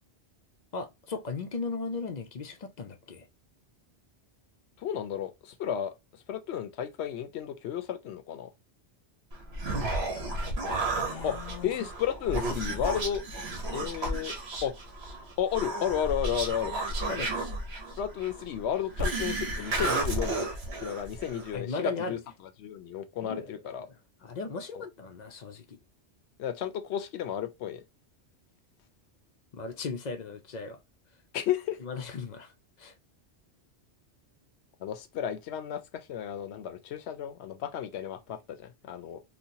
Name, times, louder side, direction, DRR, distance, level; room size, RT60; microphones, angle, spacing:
voice 1, 0.7-3.3 10.9-11.7 17.1-17.4 21.5-22.2 23.2-23.5 24.2-25.8 29.5-30.8 31.8-32.5 32.8-32.9, left 4 dB, 50° left, 0.5 m, -37 dB
voice 2, 4.8-5.9 6.3-8.5 11.2-13.2 13.7-14.4 14.6-14.7 15.4-16.7 18.0-20.4 20.8-22.2 22.6-23.9 24.7-24.8 26.4-27.8 31.3-31.8 34.8-39.2, left 9 dB, 75° left, 0.9 m, -33 dB
Human voice, 9.3-21.6, right 2 dB, 70° right, 1.3 m, -33 dB
4.0 x 2.2 x 2.8 m
omnidirectional pair, 1.1 m